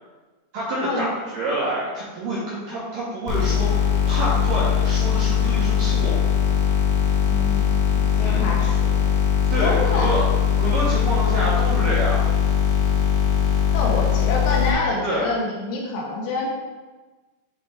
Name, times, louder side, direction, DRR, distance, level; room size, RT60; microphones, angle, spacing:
voice 1, 0.5-6.1 8.2-8.4 9.5-10.3 10.6-12.2 15.0-15.3, right 1 dB, 80° right, -7 dB, 2.0 m, -27 dB
sound 1, 3.3-14.7, left 8 dB, 65° left, 2.5 m, -20 dB
voice 2, 7.3-7.7 8.0-8.9 9.6-10.1 13.7-16.5, left 3 dB, 85° left, -2 dB, 3.7 m, -26 dB
9.9 x 3.4 x 3.4 m, 1.2 s
omnidirectional pair, 5.5 m